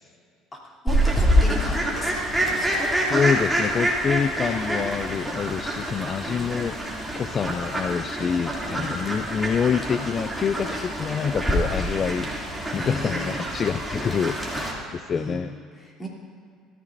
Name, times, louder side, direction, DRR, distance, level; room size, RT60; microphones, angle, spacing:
voice 1, 0.5-2.3 2.5-2.8 6.2-6.4 8.6-8.9 10.7-10.9 12.8-13.4 14.6-14.7 15.1-16.1, left 1 dB, 20° left, -4 dB, 3.2 m, -36 dB
Fowl, 0.9-14.7, equal, 5° right, 2.7 m, -26 dB
voice 2, 3.1-6.7 7.1-15.5, left 6 dB, 40° left, 11 dB, 0.4 m, -26 dB
19.0 x 14.5 x 2.6 m, 2.2 s
supercardioid pair, 105°, 0 cm